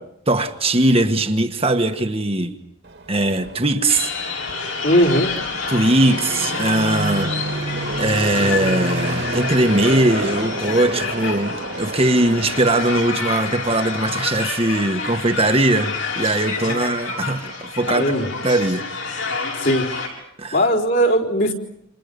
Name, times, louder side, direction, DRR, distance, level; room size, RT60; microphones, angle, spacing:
voice 1, 0.3-2.5 3.1-4.1 5.7-18.0 18.4-18.8 20.4-20.6, right 2 dB, 25° right, 1.5 m, -20 dB
Fixed-wing aircraft airplane, 2.8-13.1, right 2 dB, 55° right, 2.3 m, -29 dB
sound 1, 3.9-20.1, left 4 dB, 70° left, 7.6 m, -28 dB
voice 2, 4.8-5.3 16.6-16.8 17.9-18.3 19.6-19.9 20.5-21.5, equal, 50° left, 4.1 m, -18 dB
29.5 x 28.0 x 5.3 m
head